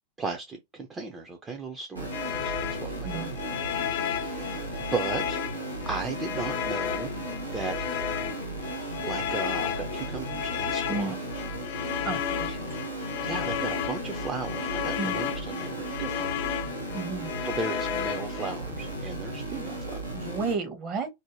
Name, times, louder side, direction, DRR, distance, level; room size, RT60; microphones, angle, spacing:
voice 1, 0.2-7.1 7.5-7.8 9.0-11.2 11.9-12.1 13.2-16.3 17.4-20.3, right 4 dB, 20° right, 0.5 m, -36 dB
sound 1, 1.9-20.6, right 1 dB, 85° right, 0.7 m, -36 dB
sound 2, 2.1-18.6, left 10 dB, 50° left, 0.3 m, -33 dB
voice 2, 12.0-12.6 15.0-15.2 16.9-17.3 20.1-21.1, right 4 dB, 35° right, 0.9 m, -32 dB
2.6 x 2.1 x 3.0 m
figure-of-eight pair, 90°, 0 cm